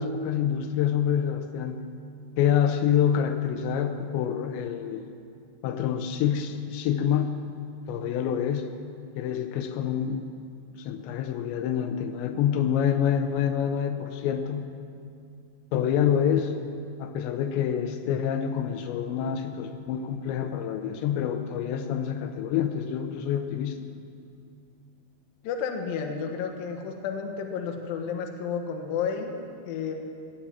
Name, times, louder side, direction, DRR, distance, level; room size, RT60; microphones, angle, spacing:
voice 1, 0.0-1.8 2.4-5.1 5.6-7.4 7.9-8.7 9.2-10.2 10.8-14.7 15.7-16.5 17.0-23.8, left 9 dB, 85° left, 7 dB, 3.0 m, -27 dB
voice 2, 25.4-29.9, left 6 dB, 65° left, 3 dB, 2.6 m, -31 dB
17.0 x 10.0 x 7.2 m, 2.5 s
omnidirectional pair, 5.1 m